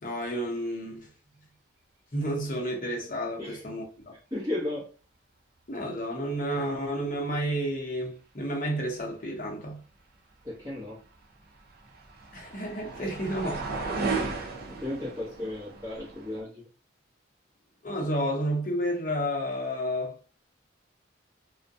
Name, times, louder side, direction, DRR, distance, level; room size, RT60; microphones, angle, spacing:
voice 1, 0.0-1.1 2.1-4.1 5.7-9.8 12.3-13.9 14.2-14.5 17.8-20.2, equal, 40° left, 0.7 m, -31 dB
voice 2, 4.3-4.9 10.4-11.0 14.7-16.6, left 1 dB, 15° right, 0.8 m, -34 dB
sound 1, 11.1-16.4, right 3 dB, 50° right, 0.5 m, -35 dB
2.3 x 2.1 x 2.6 m
head